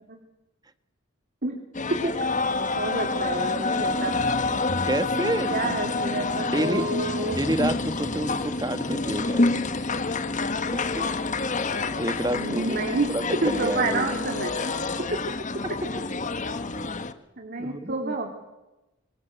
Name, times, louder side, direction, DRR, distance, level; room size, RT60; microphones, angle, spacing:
sound 1, 1.7-17.1, left 3 dB, 40° left, 1.4 m, -28 dB
voice 1, 2.8-4.2 5.1-7.4 12.3-13.1 13.4-14.7 15.0-15.1 17.4-18.3, right 2 dB, 50° right, 2 dB, 3.5 m, -29 dB
voice 2, 4.8-5.7 6.4-6.9 7.3-9.5 11.0-11.1 12.0-14.2 15.6-15.9 17.6-18.2, right 1 dB, 20° right, 11 dB, 1.5 m, -29 dB
26.0 x 26.0 x 8.1 m, 1.0 s
head